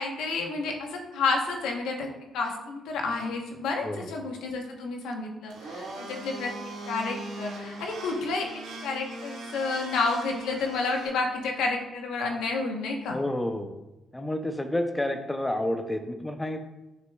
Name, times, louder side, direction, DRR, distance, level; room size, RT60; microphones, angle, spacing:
voice 1, 0.0-2.1 2.3-6.5 6.9-13.2, left 3 dB, 85° left, 2 dB, 1.0 m, -30 dB
Domestic sounds home sounds, 5.5-11.1, right 2 dB, 90° right, 1.6 m, -40 dB
voice 2, 13.1-13.7 14.1-16.6, left 1 dB, 10° left, 6 dB, 0.6 m, -29 dB
7.1 x 6.2 x 2.3 m, 1.0 s
cardioid pair, 90°, 0 cm